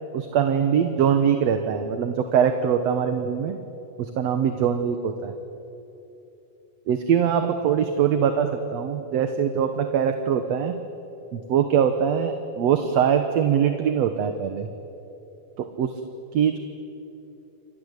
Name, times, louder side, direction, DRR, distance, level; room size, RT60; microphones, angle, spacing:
voice 1, 0.1-3.6 4.0-5.3 6.9-10.8 11.3-14.7 15.6-15.9 16.3-16.6, right 8 dB, 65° right, 7 dB, 2.2 m, -22 dB
29.5 x 24.0 x 8.2 m, 3.0 s
omnidirectional pair, 3.5 m